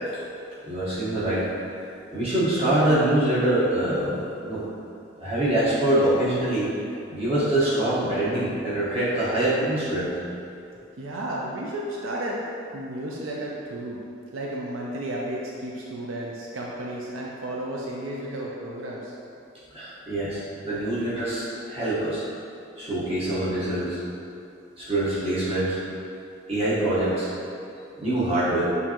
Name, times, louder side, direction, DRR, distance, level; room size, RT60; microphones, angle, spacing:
voice 1, 0.6-1.5 2.1-4.7 5.2-6.7 7.1-10.1 19.7-22.2 22.8-24.0 24.8-25.8 26.5-27.3 28.0-28.7, right 1 dB, 30° right, -10 dB, 1.2 m, -24 dB
voice 2, 11.0-12.4 12.7-14.0 14.3-19.2, right 1 dB, 75° right, -4 dB, 0.5 m, -33 dB
6.6 x 2.7 x 2.9 m, 2.7 s
head